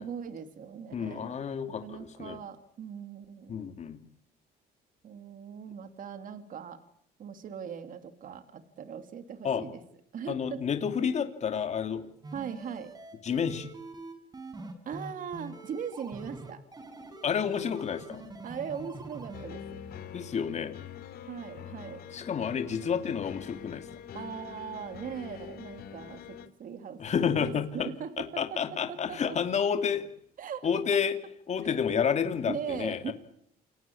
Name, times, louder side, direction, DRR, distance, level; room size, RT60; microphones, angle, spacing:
voice 1, 0.0-1.4 1.6-3.8 5.0-6.8 7.2-9.8 10.1-10.6 12.3-12.9 14.9-16.6 18.4-19.8 21.3-22.0 24.1-29.4 30.4-31.0 31.6-31.8 32.5-33.1, right 7 dB, 55° right, 9 dB, 2.7 m, -40 dB
voice 2, 0.9-2.4 3.5-4.0 9.4-9.6 10.3-12.1 13.2-13.7 17.2-18.2 20.1-20.8 22.1-23.9 27.0-27.9 28.2-30.1 30.6-31.1 31.5-33.1, left 7 dB, 40° left, 7 dB, 2.7 m, -30 dB
sound 1, 12.2-19.5, right 2 dB, 25° right, 5.7 m, -45 dB
sound 2, 19.3-26.5, left 8 dB, 65° left, 3.0 m, -45 dB
29.0 x 18.0 x 8.6 m, 0.74 s
cardioid pair, 110°, 17 cm